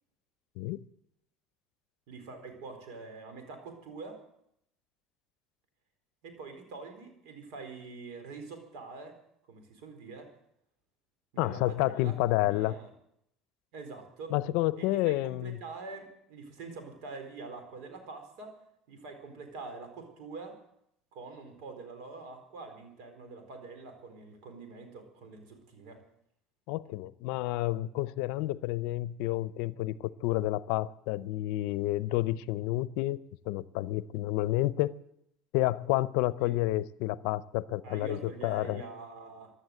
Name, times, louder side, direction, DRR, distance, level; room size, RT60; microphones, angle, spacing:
voice 1, 2.1-4.2 6.2-9.2 9.4-10.3 11.3-12.9 13.7-14.4 14.8-18.6 18.9-20.6 21.1-26.0 36.4-36.6 37.8-39.5, right 3 dB, 75° right, 6 dB, 4.2 m, -45 dB
voice 2, 11.4-12.7 14.3-15.6 26.7-33.2 33.5-34.9 35.5-38.8, left 16 dB, 80° left, 18 dB, 0.6 m, -30 dB
15.5 x 11.5 x 7.8 m, 0.75 s
supercardioid pair, 100°, 0 cm